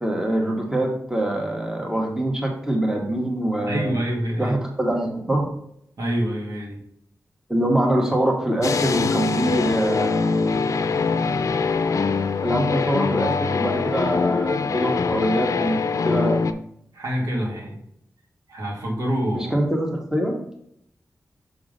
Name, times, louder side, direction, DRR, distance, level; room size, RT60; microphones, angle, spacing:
voice 1, 0.0-3.9 4.4-5.5 7.5-10.2 12.4-16.4 19.3-20.3, right 1 dB, 10° right, 0 dB, 1.4 m, -24 dB
voice 2, 3.7-4.5 6.0-6.8 16.9-17.8 18.5-19.5, equal, 70° right, -2 dB, 2.3 m, -26 dB
sound 1, 8.6-16.5, left 4 dB, 65° left, 0.5 m, -23 dB
6.3 x 3.6 x 5.2 m, 0.71 s
cardioid pair, 65°, 6 cm